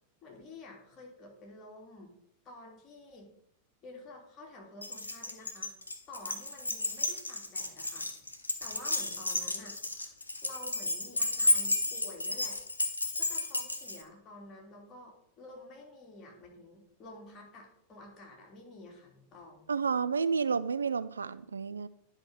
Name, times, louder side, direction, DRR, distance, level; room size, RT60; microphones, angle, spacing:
voice 1, 0.2-2.1 2.4-3.3 3.8-5.7 6.1-8.1 8.6-9.8 10.4-12.6 13.2-19.7, left 2 dB, 30° left, -2 dB, 3.3 m, -50 dB
Keys jangling, 4.8-14.0, left 2 dB, 80° left, 0.9 m, -32 dB
voice 2, 19.7-21.9, right 5 dB, 75° right, 15 dB, 0.3 m, -30 dB
10.5 x 4.8 x 5.6 m, 0.75 s
figure-of-eight pair, 90°, 0 cm